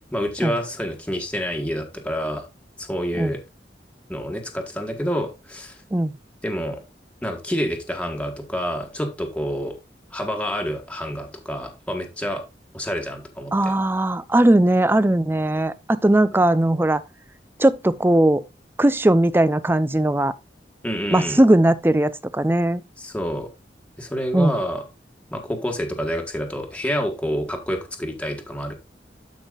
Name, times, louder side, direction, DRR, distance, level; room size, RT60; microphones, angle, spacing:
voice 1, 0.1-2.4 2.8-3.4 4.1-5.8 6.4-6.8 7.2-9.8 10.1-12.4 12.7-13.7 20.8-21.4 23.0-23.5 24.0-24.8 25.3-28.8, equal, 5° left, 1.5 m, -28 dB
voice 2, 13.5-17.0 17.6-18.4 18.8-20.3 21.1-22.8 24.3-24.6, right 1 dB, 10° right, 0.5 m, -18 dB
12.5 x 5.4 x 2.4 m
head